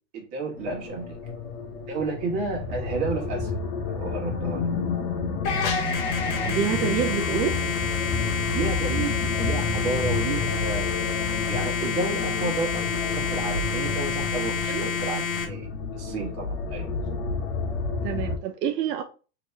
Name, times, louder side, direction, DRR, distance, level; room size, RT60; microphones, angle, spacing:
voice 1, 0.1-1.1 1.9-3.6 3.9-4.7 8.5-10.8 11.2-15.7 15.9-16.9, right 3 dB, 35° right, 1.4 m, -31 dB
sound 1, 0.5-18.4, left 4 dB, 55° left, 0.9 m, -30 dB
sound 2, 5.4-15.4, left 5 dB, 35° left, 0.6 m, -28 dB
voice 2, 6.5-7.6 14.6-14.9 18.0-19.0, right 9 dB, 85° right, 0.6 m, -27 dB
3.0 x 2.9 x 3.3 m
supercardioid pair, 155°, 47 cm